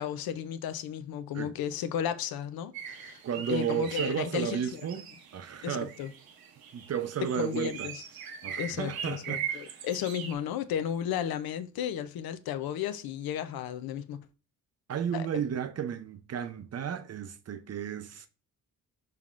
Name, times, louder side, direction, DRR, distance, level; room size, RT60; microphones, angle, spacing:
voice 1, 0.0-3.2 3.5-4.9 5.6-6.1 7.2-8.0 8.6-14.3 15.1-15.3, left 9 dB, 85° left, 0.5 m, -34 dB
sound 1, 2.7-10.3, right 8 dB, 85° right, 0.8 m, -41 dB
voice 2, 3.2-5.9 6.7-7.9 8.4-9.8 14.9-18.3, right 8 dB, 45° right, 0.6 m, -33 dB
5.6 x 3.4 x 2.4 m
cardioid pair, 95°, 35 cm